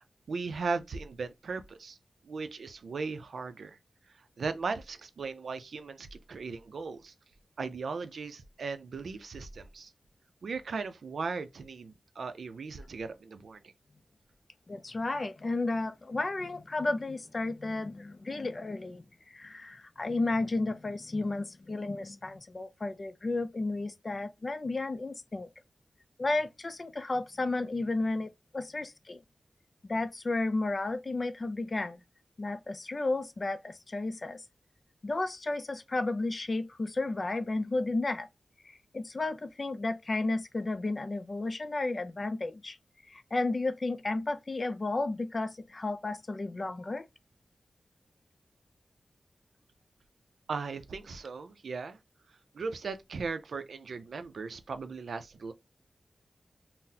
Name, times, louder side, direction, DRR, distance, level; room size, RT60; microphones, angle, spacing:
voice 1, 0.0-2.0 2.2-3.8 4.4-7.1 7.6-9.9 10.4-13.6 50.5-52.0 52.5-55.5, right 4 dB, 85° right, 0.4 m, -37 dB
voice 2, 14.7-25.5 26.2-29.2 29.9-32.0 32.4-34.4 35.0-38.3 38.6-42.8 43.1-47.1, left 2 dB, 40° left, 0.3 m, -33 dB
3.8 x 2.0 x 2.7 m
wide cardioid pair, 125°, 0 cm